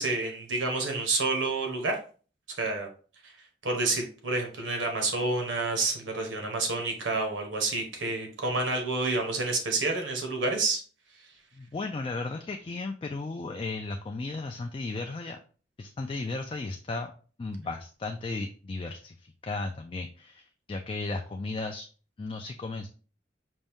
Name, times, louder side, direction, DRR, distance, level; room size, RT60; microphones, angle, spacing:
voice 1, 0.0-2.0 2.6-2.9 3.2-3.3 3.6-10.8, right 3 dB, 85° right, 3 dB, 1.2 m, -29 dB
voice 2, 11.5-15.4 15.8-17.1 17.4-21.9 22.2-22.9, left 3 dB, 30° left, 5 dB, 0.3 m, -35 dB
5.2 x 2.6 x 3.5 m, 0.39 s
head